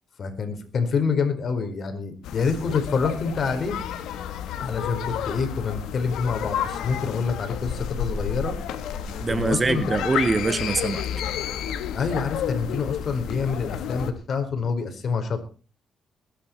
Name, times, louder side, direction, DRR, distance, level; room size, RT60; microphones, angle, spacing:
voice 1, 0.2-3.8 4.6-8.6 9.3-9.8 11.9-15.4, left 5 dB, 50° left, 4.6 m, -27 dB
sound 1, 2.2-14.1, left 9 dB, 85° left, 2.1 m, -31 dB
voice 2, 9.1-11.1, right 3 dB, 30° right, 1.2 m, -24 dB
21.0 x 10.5 x 4.5 m
cardioid pair, 90°, 0 cm